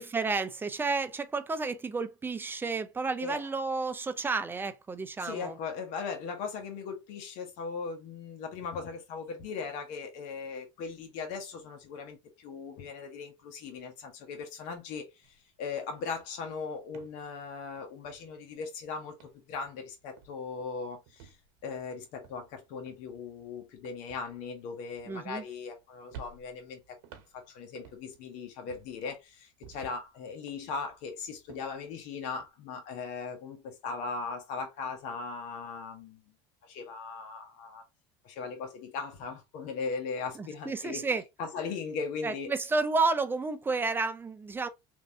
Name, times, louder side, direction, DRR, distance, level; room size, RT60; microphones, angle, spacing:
voice 1, 0.0-5.6 25.1-25.4 40.4-41.2 42.2-44.7, right 4 dB, 15° right, 0.5 m, -31 dB
voice 2, 5.2-15.3 15.6-21.3 21.6-27.0 27.3-36.2 36.6-37.8 38.2-41.0 41.4-42.5, left 5 dB, 65° left, 1.2 m, -38 dB
sound 1, 15.2-15.4 15.7-18.7 19.1-19.9 20.2-20.6 21.1-25.8 26.1-28.3 28.7-30.1 30.5-32.5, right 7 dB, 70° right, 1.0 m, -54 dB
3.1 x 2.7 x 2.7 m
supercardioid pair, 105°, 14 cm